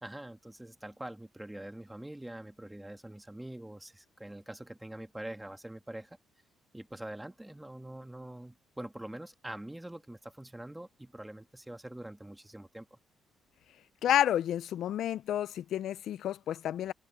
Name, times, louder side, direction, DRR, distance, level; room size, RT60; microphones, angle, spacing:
voice 1, 0.0-6.2 6.7-13.0, right 1 dB, 5° right, 1.6 m, -44 dB
voice 2, 14.0-16.9, left 11 dB, 60° left, 0.3 m, -30 dB
cardioid pair, 170°, 0 cm